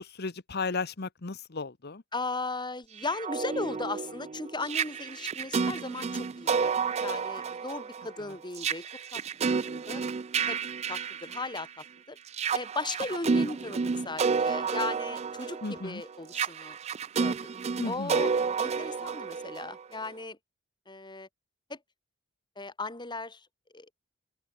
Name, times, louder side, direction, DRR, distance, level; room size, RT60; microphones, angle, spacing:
voice 1, 0.0-2.0 8.2-8.4 15.6-16.0 17.8-18.3, left 4 dB, 55° left, 1.1 m, -35 dB
voice 2, 2.1-8.9 9.1-9.2 9.7-10.0 10.5-10.6 10.9-12.2 12.5-16.8 17.2-17.4 17.8-18.3 18.6-20.4 20.9-21.3 21.7-21.8 22.6-23.5 23.7-23.9, left 3 dB, 20° left, 3.9 m, -37 dB
sound 1, 3.0-11.8 12.3-20.1, right 5 dB, 30° right, 0.4 m, -31 dB
open air
head